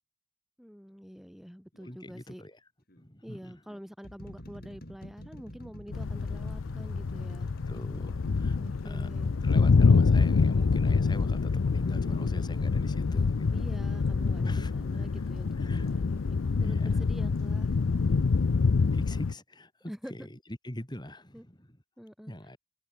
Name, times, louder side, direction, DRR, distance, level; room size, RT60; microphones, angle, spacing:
voice 1, 0.6-2.4 3.2-7.5 8.6-9.4 13.5-17.7 19.9-20.3 21.3-21.4 22.0-22.3, equal, ahead, 3.1 m, -46 dB
sound 1, 1.7-2.0 2.9-3.0 3.7-15.0 15.8-15.9, equal, 50° left, 7.7 m, -48 dB
voice 2, 1.8-2.6 3.0-3.6 7.7-8.6 8.8-9.1 9.4-13.7 14.4-15.3 15.5-15.9 16.2-17.0 18.9-20.4 20.6-21.8 22.3-22.6, left 1 dB, 20° left, 4.1 m, -43 dB
sound 2, 5.9-19.3, left 4 dB, 80° left, 0.5 m, -26 dB
head